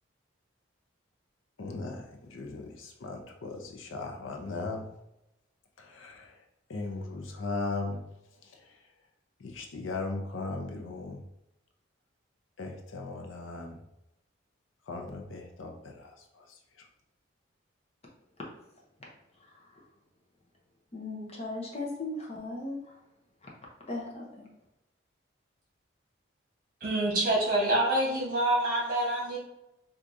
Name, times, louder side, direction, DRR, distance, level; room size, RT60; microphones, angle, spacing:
voice 1, 1.6-4.9 5.8-6.3 6.7-8.0 9.4-11.2 12.6-13.8 14.9-16.4, left 3 dB, 85° left, 2 dB, 0.6 m, -37 dB
voice 2, 19.4-19.8 20.9-23.0 23.4-23.5 23.9-24.5, left 2 dB, 30° left, -2 dB, 0.7 m, -38 dB
voice 3, 26.8-29.4, right 1 dB, 45° right, -3 dB, 1.2 m, -26 dB
4.5 x 2.5 x 2.6 m, 0.88 s
head